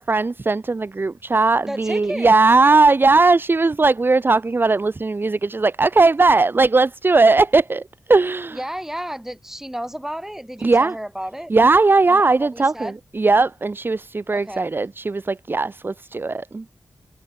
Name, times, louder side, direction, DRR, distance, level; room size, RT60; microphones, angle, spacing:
voice 1, 0.0-7.8 8.1-8.6 10.6-10.9 11.5-16.6, right 3 dB, 35° right, 1.1 m, -18 dB
voice 2, 1.7-2.4 8.5-11.5 12.1-12.9 14.3-14.7, equal, 5° right, 7.3 m, -32 dB
wide cardioid pair, 80°, 6 cm